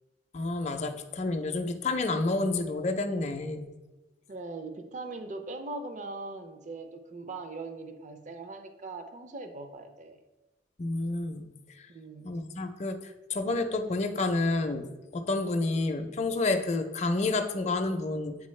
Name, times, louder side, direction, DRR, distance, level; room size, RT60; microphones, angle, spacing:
voice 1, 0.3-3.7 10.8-11.5 11.8-11.9 12.2-18.4, left 2 dB, 40° left, 6 dB, 0.5 m, -29 dB
voice 2, 4.3-10.2 11.9-12.3, right 3 dB, 40° right, 7 dB, 0.5 m, -40 dB
8.4 x 4.0 x 3.2 m, 1.1 s
head